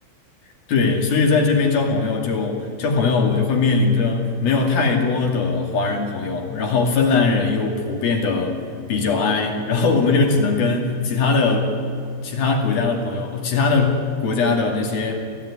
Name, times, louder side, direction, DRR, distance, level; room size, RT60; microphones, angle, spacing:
voice 1, 0.7-8.6 8.9-11.8 12.2-15.3, left 4 dB, 55° left, 2 dB, 4.0 m, -20 dB
25.5 x 16.0 x 9.9 m, 2.4 s
omnidirectional pair, 5.4 m